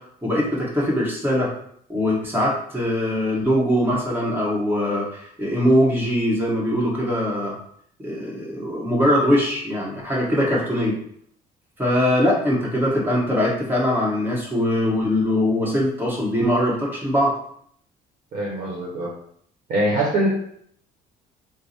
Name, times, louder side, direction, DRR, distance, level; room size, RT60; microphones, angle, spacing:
voice 1, 0.2-1.5 1.9-7.5 8.0-11.0 11.8-17.3, equal, 10° right, -4 dB, 1.3 m, -21 dB
voice 2, 18.3-19.1 19.7-20.3, right 1 dB, 55° right, -3 dB, 1.0 m, -23 dB
3.5 x 2.1 x 4.2 m, 0.65 s
cardioid pair, 110°, 17 cm